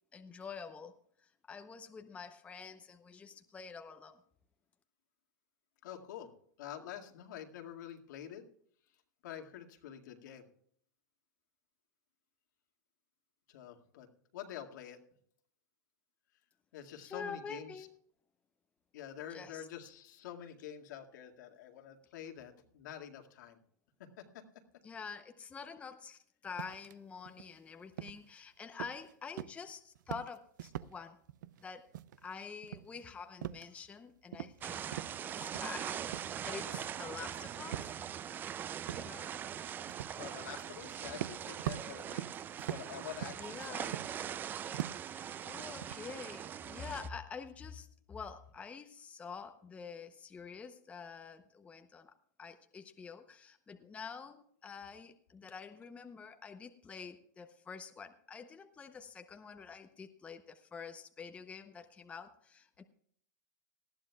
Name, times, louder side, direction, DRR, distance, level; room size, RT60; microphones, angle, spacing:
voice 1, 0.1-4.2 17.0-17.9 19.3-19.7 24.8-31.2 31.6-31.9 32.2-34.9 35.2-38.0 38.9-39.3 43.3-44.2 45.1-62.8, left 5 dB, 10° left, 7 dB, 0.7 m, -47 dB
voice 2, 5.8-6.3 6.6-8.5 9.2-10.5 13.5-14.1 14.3-15.0 16.7-17.9 18.9-23.6 24.0-24.4 40.2-42.3 42.7-44.0, left 10 dB, 70° left, 3 dB, 2.1 m, -47 dB
sound 1, 26.6-26.9 27.3-27.5 28.0-28.4 28.8-29.1 29.4-29.7 30.0-30.9 31.3-31.6 31.9-32.4 32.6-34.0 34.3-34.7 34.9-35.8 36.0-37.0 37.7-37.9 38.4-38.5 38.9-39.1 39.9-40.2 40.8-40.9 41.1-44.4 44.7-45.1 45.6-46.4, right 13 dB, 75° right, 0.5 m, -43 dB
sound 2, 34.6-47.1, right 9 dB, 20° right, 0.4 m, -42 dB
19.0 x 14.0 x 2.3 m, 0.63 s
supercardioid pair, 145°, 10 cm